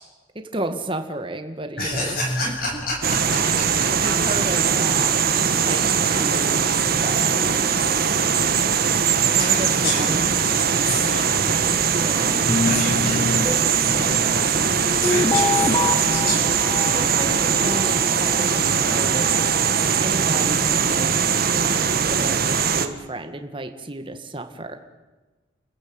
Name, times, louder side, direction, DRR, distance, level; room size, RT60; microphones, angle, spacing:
voice 1, 0.5-2.2 2.4-2.8 3.4-3.5 4.0-6.7 7.0-7.7 9.3-10.3 11.7-12.7 13.8-14.7 16.8-24.8, right 1 dB, 25° right, 6 dB, 1.8 m, -33 dB
voice 2, 1.8-3.0 3.3-3.9 9.4-10.5 10.8-11.3 12.6-13.3 15.0-16.6, left 2 dB, 50° left, -2 dB, 7.9 m, -29 dB
sound 1, 1.9-4.5 4.9-5.0 5.3-5.4 11.0-11.1 11.3-11.6 12.2-20.7, left 2 dB, 20° left, 0.7 m, -29 dB
sound 2, 3.0-22.9, right 6 dB, 50° right, 1.6 m, -21 dB
29.5 x 15.5 x 8.8 m, 1.2 s
head